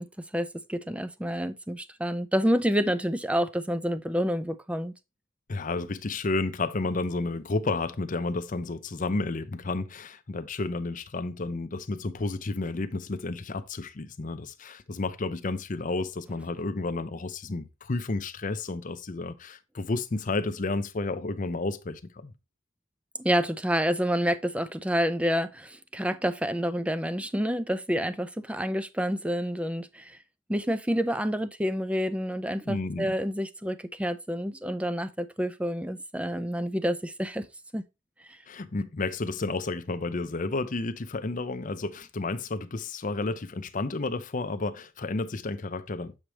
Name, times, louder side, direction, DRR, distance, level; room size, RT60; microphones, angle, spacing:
voice 1, 0.0-4.9 23.2-30.2 30.5-37.5 37.7-37.8 38.3-38.4, equal, 5° right, 0.4 m, -28 dB
voice 2, 5.5-22.3 32.7-33.1 38.5-46.2, left 3 dB, 40° left, 0.6 m, -31 dB
7.4 x 4.9 x 3.0 m
head